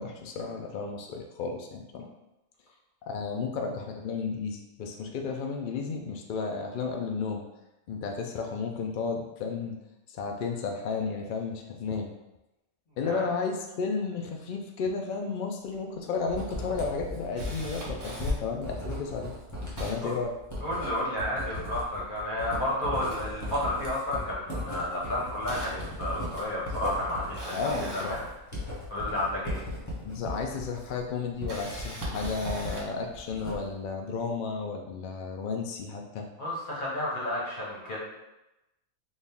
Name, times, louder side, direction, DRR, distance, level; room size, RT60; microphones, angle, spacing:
voice 1, 0.0-2.1 3.0-7.4 7.9-9.7 10.1-12.1 13.0-19.3 19.8-20.3 27.5-28.2 30.0-36.3, left 4 dB, 80° left, 2 dB, 0.4 m, -33 dB
Camera, 15.7-15.8 16.1-16.2 16.7-18.3 19.0-19.1 19.3-20.9 21.3-22.5 22.9-24.1 24.4-24.6 25.0-29.1 30.2-30.3 31.2-33.0 33.6-33.7, right 2 dB, 65° right, 1.6 m, -43 dB
Writing, 16.3-32.8 33.1-33.8, left 1 dB, 15° left, 0.8 m, -37 dB
voice 2, 20.6-28.3 28.9-29.6 36.4-38.0, left 1 dB, 45° left, -5 dB, 1.0 m, -31 dB
4.2 x 2.4 x 3.5 m, 0.96 s
omnidirectional pair, 1.4 m